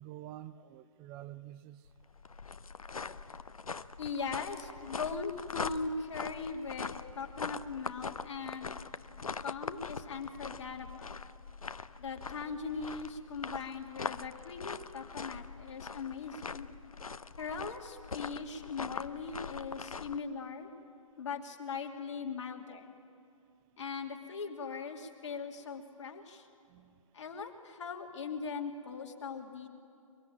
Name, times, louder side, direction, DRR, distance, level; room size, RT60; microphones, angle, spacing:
voice 1, 0.0-1.8 26.7-26.9, right 13 dB, 20° right, 14 dB, 0.6 m, -48 dB
sound 1, 1.9-20.2, left 4 dB, 85° left, 0.8 m, -42 dB
voice 2, 4.0-8.7 9.4-11.2 12.0-16.7 17.4-20.7 21.2-22.9 23.8-26.5 27.1-29.7, left 5 dB, 55° left, 2 dB, 2.8 m, -40 dB
23.5 x 23.5 x 8.7 m, 2.5 s
figure-of-eight pair, 135°, 18 cm